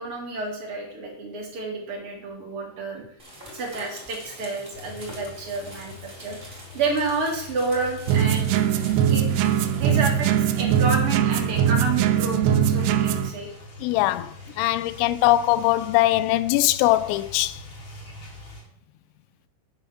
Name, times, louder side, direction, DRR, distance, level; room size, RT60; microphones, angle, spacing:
voice 1, 0.0-3.0 3.5-8.6 9.1-9.3 9.7-13.5, right 3 dB, 45° right, 1.9 m, -30 dB
sound 1, 3.2-11.0, equal, 15° right, 3.3 m, -45 dB
sound 2, 4.7-18.6, left 3 dB, 35° left, 2.1 m, -44 dB
sound 3, 8.1-13.3, right 9 dB, 85° right, 3.0 m, -21 dB
voice 2, 13.8-17.6, left 16 dB, 85° left, 2.7 m, -21 dB
9.0 x 5.7 x 7.0 m
omnidirectional pair, 5.6 m